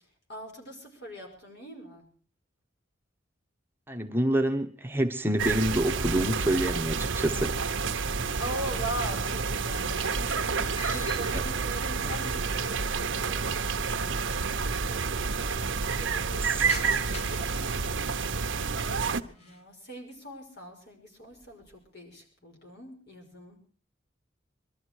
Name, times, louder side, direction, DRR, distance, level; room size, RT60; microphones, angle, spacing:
voice 1, 0.3-2.1 8.4-15.0 15.3-23.6, right 1 dB, 60° left, 2 dB, 5.8 m, -42 dB
voice 2, 3.9-7.5 11.3-11.4 16.4-16.7, right 1 dB, 10° right, 5 dB, 1.0 m, -27 dB
sound 1, 5.4-19.2, right 5 dB, 85° right, 1.0 m, -29 dB
sound 2, 9.2-12.8 13.1-13.2 14.0-14.1 14.3-14.4 14.7-15.2 15.6-18.8 19.2-19.7 20.2-20.6 21.0-21.9, left 3 dB, 35° left, 1.4 m, -47 dB
22.5 x 13.0 x 4.7 m, 0.44 s
head